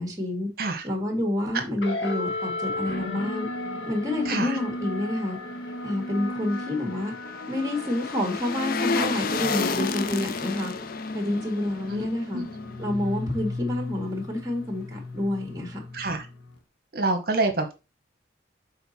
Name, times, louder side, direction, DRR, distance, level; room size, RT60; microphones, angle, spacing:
voice 1, 0.0-0.5 0.8-3.5 3.9-5.4 5.8-7.1 7.5-10.7 11.1-12.4 12.8-15.8, left 1 dB, 20° right, 1.7 m, -28 dB
sound 1, 1.8-16.6, left 2 dB, 80° left, 1.2 m, -35 dB
voice 2, 4.3-4.6 11.9-12.0 12.3-12.5 15.9-16.2 16.9-17.7, right 2 dB, 50° right, 1.1 m, -26 dB
sound 2, 6.1-13.3 13.6-13.7, left 4 dB, 50° left, 0.4 m, -32 dB
6.7 x 4.1 x 4.2 m
head